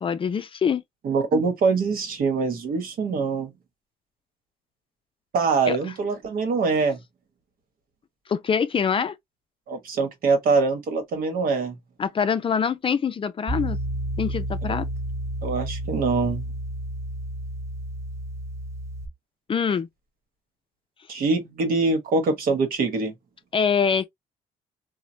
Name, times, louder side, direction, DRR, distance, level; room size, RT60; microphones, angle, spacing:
voice 1, 0.0-0.8 5.7-5.8 8.3-9.1 12.0-13.8 14.2-14.9 19.5-19.9 23.5-24.1, left 6 dB, 35° left, 0.5 m, -24 dB
voice 2, 1.0-3.5 5.3-7.0 9.7-11.8 14.7-14.8 15.4-16.4 21.1-23.1, right 4 dB, 65° right, 1.1 m, -24 dB
Piano, 13.5-19.1, right 1 dB, 20° right, 0.7 m, -31 dB
3.0 x 2.2 x 2.6 m
cardioid pair, 90°, 16 cm